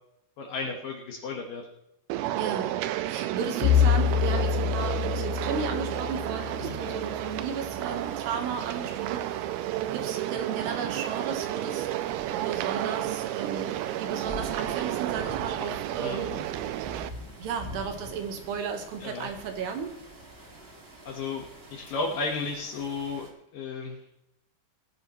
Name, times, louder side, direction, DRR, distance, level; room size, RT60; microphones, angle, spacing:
voice 1, 0.4-1.6 6.6-6.8 15.6-15.7 16.0-16.5 19.0-19.3 21.1-23.3 23.5-24.0, left 4 dB, 65° left, 2 dB, 2.5 m, -34 dB
sound 1, 2.1-17.1, right 13 dB, 85° right, 2.3 m, -31 dB
voice 2, 2.4-2.8 3.1-9.5 9.9-11.9 12.3-16.5 17.4-19.9, right 6 dB, 70° right, 5 dB, 3.2 m, -35 dB
sound 2, 3.4-23.3, right 1 dB, 50° right, 0.7 m, -47 dB
Bowed string instrument, 3.6-7.8, left 9 dB, 85° left, 2.9 m, -27 dB
19.0 x 10.5 x 3.1 m, 0.80 s
omnidirectional pair, 5.2 m